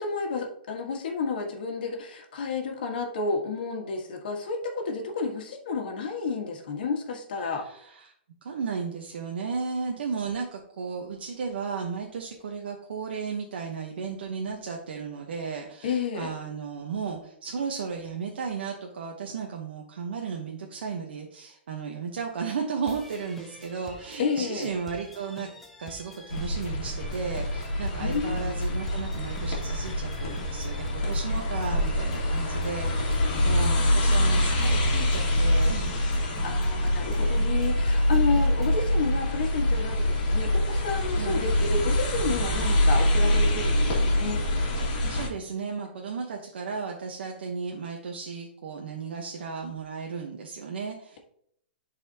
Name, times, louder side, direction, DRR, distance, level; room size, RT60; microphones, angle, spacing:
voice 1, 0.0-7.6 15.8-16.3 24.2-24.7 28.0-28.6 36.4-44.4, left 4 dB, 60° left, 2 dB, 1.5 m, -31 dB
voice 2, 7.4-8.1 8.4-25.5 25.8-35.9 41.1-41.5 44.8-51.2, right 5 dB, 80° right, 0 dB, 1.0 m, -34 dB
sound 1, 22.8-38.8, equal, ahead, 0.5 m, -48 dB
sound 2, 26.3-45.3, left 1 dB, 40° left, 2.0 m, -25 dB
10.5 x 4.1 x 2.8 m, 0.69 s
hypercardioid pair, 170°, 6 cm